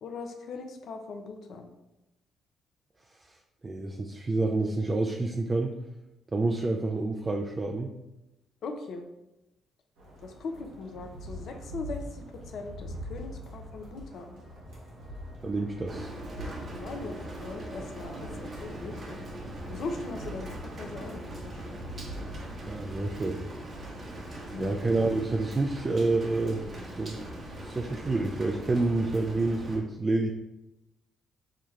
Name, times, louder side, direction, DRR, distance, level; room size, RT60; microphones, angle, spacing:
voice 1, 0.0-1.7 8.6-9.1 10.2-14.3 16.7-19.2 19.7-21.8 24.5-24.8, left 3 dB, 65° left, 5 dB, 0.6 m, -40 dB
voice 2, 3.6-5.7 6.3-7.9 15.4-16.1 22.6-23.4 24.6-26.6 26.9-27.2 27.6-30.3, right 2 dB, 30° right, 2 dB, 0.4 m, -28 dB
sound 1, 10.0-24.8, equal, 80° right, 1.1 m, -44 dB
sound 2, 14.4-21.3, left 1 dB, 40° left, 1.4 m, -51 dB
Rain, 15.9-29.8, right 1 dB, 50° right, 1.0 m, -41 dB
5.6 x 2.3 x 3.2 m, 0.95 s
hypercardioid pair, 55°, 0 cm